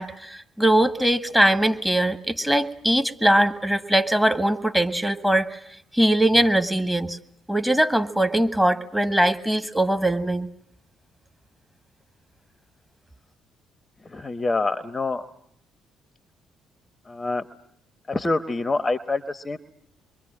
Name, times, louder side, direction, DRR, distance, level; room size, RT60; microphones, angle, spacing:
voice 1, 0.0-5.5 5.9-7.2 7.5-10.5, right 1 dB, 5° right, 10 dB, 1.8 m, -21 dB
voice 2, 14.1-15.2 17.1-17.5 18.1-19.6, left 3 dB, 25° left, 12 dB, 1.0 m, -26 dB
27.5 x 23.0 x 7.6 m, 0.69 s
figure-of-eight pair, 45°, 0 cm